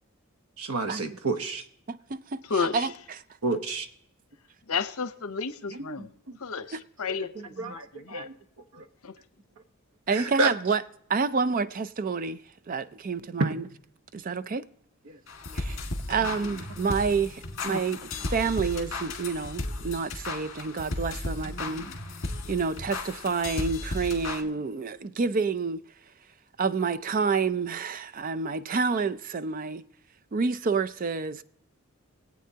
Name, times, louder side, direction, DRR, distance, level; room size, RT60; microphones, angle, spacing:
voice 1, 0.6-1.7 3.4-3.9 5.7-6.4 7.0-8.9 10.1-10.5 13.4-13.5 15.0-15.2, right 3 dB, 80° right, 1.0 m, -31 dB
voice 2, 1.9-3.2 6.7-6.8 7.3-7.5 10.1-10.8 11.1-12.4 12.7-13.6 14.1-14.6 15.5-15.8 16.1-21.9 22.5-25.8 26.6-29.8 30.3-31.4, right 5 dB, 40° right, 0.4 m, -29 dB
voice 3, 4.7-6.1 6.4-7.5 8.1-8.2 9.0-9.1, left 5 dB, 80° left, 0.8 m, -31 dB
sound 1, 15.3-24.4, left 2 dB, 55° left, 1.7 m, -35 dB
23.0 x 8.4 x 2.8 m
head